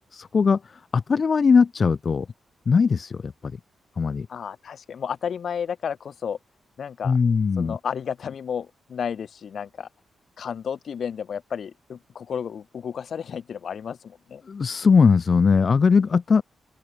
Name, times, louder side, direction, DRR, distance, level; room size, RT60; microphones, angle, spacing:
voice 1, 0.1-2.3 2.7-3.6 4.0-4.3 7.0-7.8 14.5-16.4, left 5 dB, 45° left, 0.4 m, -20 dB
voice 2, 4.3-6.4 6.8-7.2 7.6-9.9 10.4-14.4, left 7 dB, 60° left, 0.9 m, -32 dB
open air
cardioid pair, 115°, 0 cm